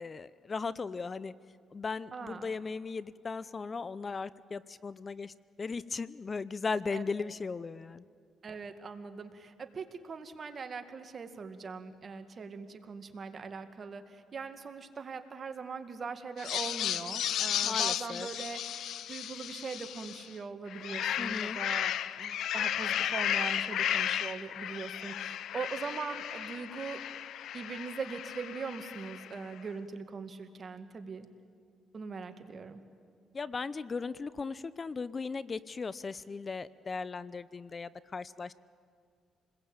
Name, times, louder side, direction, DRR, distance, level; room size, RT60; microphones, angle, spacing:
voice 1, 0.0-1.3 1.7-8.0 17.6-18.3 21.2-21.6 33.3-38.5, left 4 dB, 35° left, 17 dB, 0.6 m, -37 dB
voice 2, 2.1-2.5 6.9-7.0 8.4-18.6 19.1-27.0 27.5-31.3 31.9-32.8, right 5 dB, 45° right, 8 dB, 2.1 m, -41 dB
sound 1, 16.4-20.3 20.7-29.4, left 10 dB, 75° left, 0.6 m, -34 dB
27.5 x 21.0 x 8.8 m, 2.1 s
cardioid pair, 90°, 0 cm